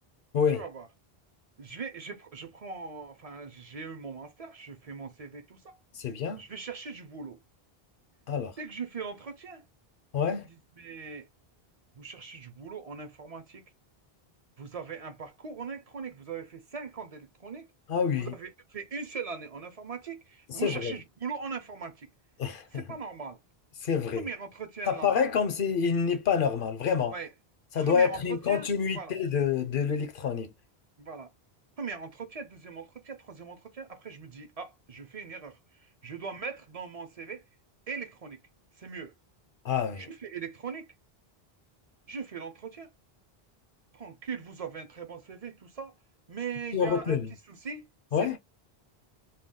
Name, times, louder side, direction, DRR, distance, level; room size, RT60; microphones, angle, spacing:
voice 1, 0.5-0.9 1.6-5.8 6.4-7.4 8.6-9.6 10.3-11.3 12.0-13.6 14.6-17.7 18.1-22.1 22.7-23.4 24.2-25.4 27.1-27.3 27.7-28.7 28.9-29.1 31.0-31.3 31.8-37.4 37.9-38.4 38.8-39.1 39.9-40.9 42.1-42.9 43.9-45.9 46.3-47.9 48.2-48.4, right 5 dB, 45° right, 0.6 m, -40 dB
voice 2, 5.9-6.4 8.3-8.5 10.1-10.5 17.9-18.3 20.6-21.0 22.4-22.8 23.8-24.3 24.9-27.1 27.7-30.5 39.6-40.1 46.7-47.3 48.1-48.4, left 6 dB, 60° left, 0.8 m, -27 dB
2.3 x 2.2 x 3.6 m
omnidirectional pair, 1.0 m